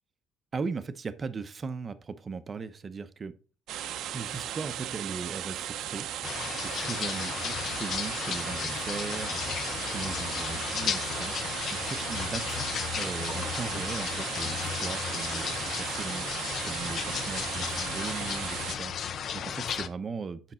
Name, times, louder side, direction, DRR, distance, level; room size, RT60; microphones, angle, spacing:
voice 1, 0.5-3.3 4.1-12.6 13.0-20.4, right 5 dB, 30° right, 12 dB, 0.8 m, -38 dB
sound 1, 3.7-18.8, right 10 dB, 70° right, 0.8 m, -36 dB
sound 2, 6.2-19.9, left 8 dB, 50° left, 0.7 m, -34 dB
8.4 x 5.9 x 4.4 m, 0.36 s
cardioid pair, 140°, 0 cm